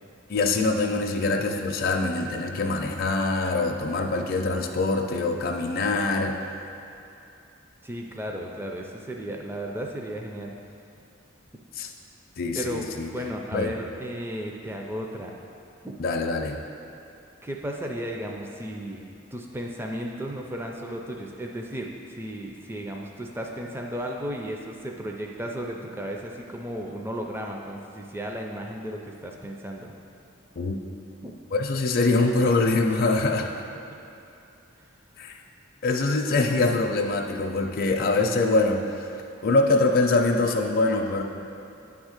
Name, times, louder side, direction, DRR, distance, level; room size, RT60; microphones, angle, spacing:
voice 1, 0.3-6.4 11.7-11.9 12.4-13.1 13.5-13.7 16.0-16.6 30.6-30.8 31.5-33.6 35.2-35.3 35.8-39.1 39.4-41.2, left 3 dB, 50° left, 1 dB, 0.5 m, -24 dB
voice 2, 7.8-10.6 12.5-15.3 15.8-15.9 17.4-19.0 19.3-29.9 31.2-31.3 34.8-34.9, equal, 10° right, 0 dB, 0.4 m, -34 dB
9.4 x 3.6 x 6.5 m, 2.7 s
head